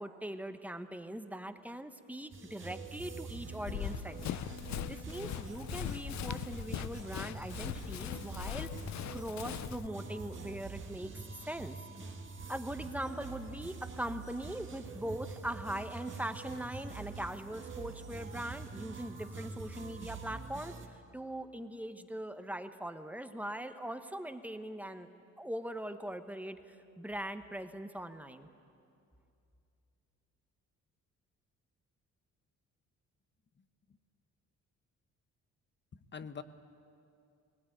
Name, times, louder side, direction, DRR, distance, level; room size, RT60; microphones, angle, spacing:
voice 1, 0.0-4.4 4.9-11.8 12.5-25.1 25.4-28.5, right 1 dB, 5° right, 8 dB, 1.2 m, -41 dB
sound 1, 2.3-20.9, right 4 dB, 40° right, 1.8 m, -45 dB
Run, 3.7-9.9, left 12 dB, 65° left, 0.6 m, -40 dB
voice 2, 33.6-34.0 36.1-36.4, left 6 dB, 35° left, 11 dB, 1.1 m, -45 dB
19.5 x 19.5 x 9.2 m, 2.6 s
cardioid pair, 90°, 30 cm